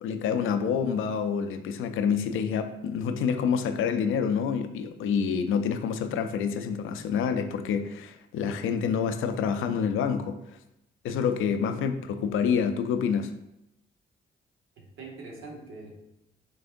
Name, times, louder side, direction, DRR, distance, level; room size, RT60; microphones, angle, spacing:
voice 1, 0.0-10.4 11.0-13.3, left 7 dB, 75° left, 8 dB, 0.5 m, -27 dB
voice 2, 11.6-12.0 14.8-15.9, right 3 dB, 70° right, -1 dB, 0.9 m, -44 dB
5.1 x 3.4 x 2.5 m, 0.85 s
supercardioid pair, 50°, 21 cm